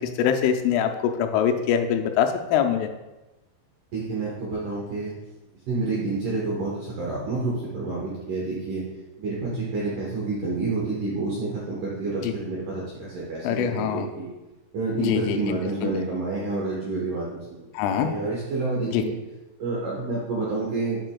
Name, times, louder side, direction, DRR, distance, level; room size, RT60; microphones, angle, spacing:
voice 1, 0.2-2.9 12.2-12.3 13.4-14.1 15.0-16.0 17.7-18.1 18.9-19.0, left 8 dB, 90° left, 5 dB, 3.1 m, -24 dB
voice 2, 3.9-5.1 5.7-8.8 9.2-14.3 14.7-19.1 19.6-21.0, right 3 dB, 75° right, -5 dB, 1.9 m, -29 dB
8.7 x 7.6 x 2.3 m, 1.0 s
omnidirectional pair, 5.5 m